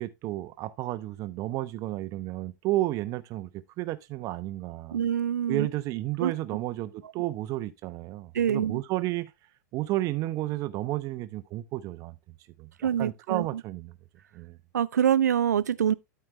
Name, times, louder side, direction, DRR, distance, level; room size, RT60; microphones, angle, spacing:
voice 1, 0.0-5.0 5.5-9.3 9.7-12.2 12.6-14.0 14.3-14.6, right 16 dB, 35° right, 0.9 m, -32 dB
voice 2, 4.9-5.7 6.2-6.3 8.3-8.8 12.8-13.5 14.7-15.9, right 9 dB, 70° right, 0.5 m, -25 dB
12.5 x 4.5 x 3.3 m
figure-of-eight pair, 95°, 10 cm